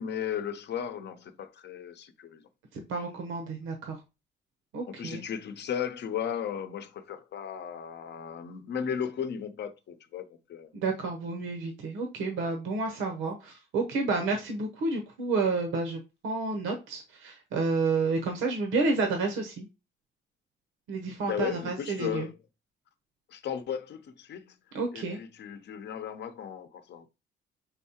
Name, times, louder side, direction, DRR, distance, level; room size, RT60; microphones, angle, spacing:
voice 1, 0.0-2.5 4.9-10.7 21.2-22.3 23.3-24.6 24.9-27.1, left 8 dB, 60° left, 0.7 m, -35 dB
voice 2, 2.7-4.0 4.7-5.2 10.7-19.7 20.9-22.3 24.7-25.2, right 3 dB, 85° right, 0.9 m, -30 dB
4.6 x 4.1 x 2.8 m
cardioid pair, 90°, 20 cm